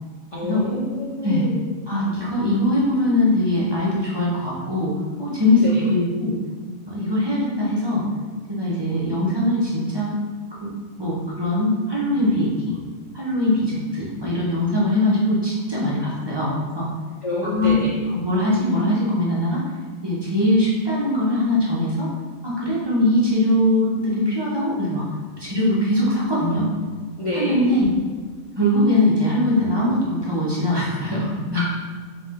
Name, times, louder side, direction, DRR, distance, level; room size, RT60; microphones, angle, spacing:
voice 1, 0.3-1.6 5.6-5.8 17.2-17.9 27.2-27.6 31.5-31.6, left 1 dB, 50° left, -6 dB, 0.4 m, -27 dB
voice 2, 1.9-4.9 5.2-6.3 6.9-8.0 8.5-10.1 10.6-10.7 11.0-12.7 13.1-16.9 17.4-17.7 18.1-19.6 20.0-22.1 22.4-25.0 25.4-26.7 27.3-27.9 28.6-31.6, left 1 dB, 25° right, -7 dB, 0.7 m, -21 dB
3.5 x 3.2 x 3.6 m, 1.5 s
omnidirectional pair, 1.4 m